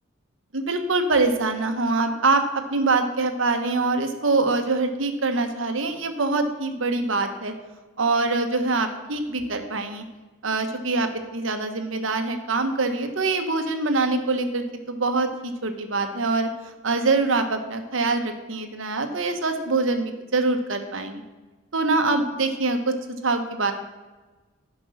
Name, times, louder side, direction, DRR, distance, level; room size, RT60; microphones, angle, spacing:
voice 1, 0.5-2.4 2.7-7.5 8.0-10.0 10.4-16.5 16.8-21.2 21.7-23.0 23.2-23.7, right 3 dB, 70° right, 6 dB, 1.2 m, -24 dB
11.5 x 5.3 x 6.3 m, 1.2 s
head